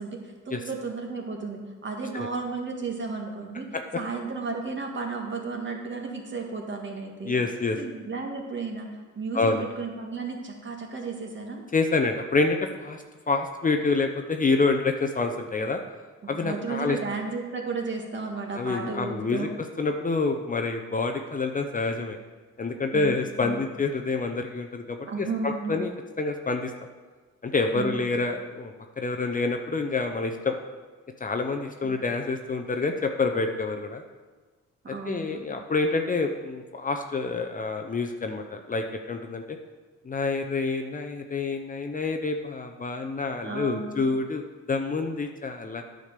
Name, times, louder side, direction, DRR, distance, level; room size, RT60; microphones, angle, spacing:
voice 1, 0.0-3.7 3.9-7.4 7.8-8.9 9.2-11.6 16.2-19.5 22.9-23.7 25.1-25.8 27.7-28.0 31.8-32.0 34.8-35.4 43.4-44.1, right 4 dB, 40° right, 1 dB, 1.9 m, -33 dB
voice 2, 7.2-7.8 9.3-9.6 11.7-15.8 16.3-17.0 18.5-19.5 19.8-22.2 22.6-25.9 26.2-26.7 27.4-30.6 31.2-34.0 35.1-39.4 40.0-45.8, left 3 dB, 25° left, 4 dB, 0.7 m, -27 dB
9.8 x 5.1 x 6.7 m, 1.4 s
cardioid pair, 90°, 30 cm